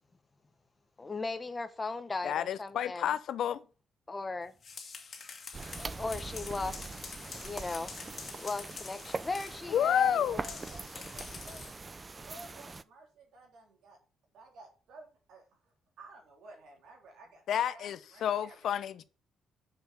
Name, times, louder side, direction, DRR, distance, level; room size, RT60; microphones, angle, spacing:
voice 1, 1.0-3.1 4.1-4.5 5.8-6.8 7.4-7.9 8.4-10.2, left 3 dB, 25° left, 0.9 m, -37 dB
voice 2, 2.2-3.6 9.7-10.4 17.5-19.0, left 9 dB, 70° left, 0.6 m, -30 dB
sound 1, 4.4-9.7 10.4-11.8, left 5 dB, 45° left, 1.8 m, -46 dB
sound 2, 5.5-12.8, right 3 dB, 25° right, 0.4 m, -42 dB
voice 3, 10.1-11.6 12.1-14.0 14.3-18.6, right 2 dB, 80° right, 3.4 m, -53 dB
6.8 x 5.6 x 5.6 m
cardioid pair, 90°, 0 cm